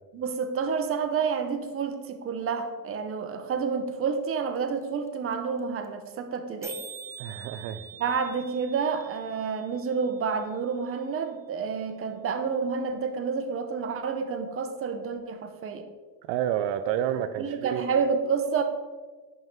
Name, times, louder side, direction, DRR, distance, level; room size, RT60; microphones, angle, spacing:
voice 1, 0.1-6.8 8.0-15.9 17.4-18.6, right 5 dB, 35° right, 7 dB, 0.7 m, -29 dB
sound 1, 4.6-4.7 4.8-4.9 5.1-5.3 5.6-5.7 5.8-6.1 6.4-6.5 6.6-10.6, right 5 dB, 10° right, 0.3 m, -45 dB
voice 2, 7.2-7.8 16.3-17.9, right 10 dB, 80° right, 10 dB, 0.5 m, -29 dB
11.0 x 3.7 x 3.1 m, 1.3 s
cardioid pair, 130°, 41 cm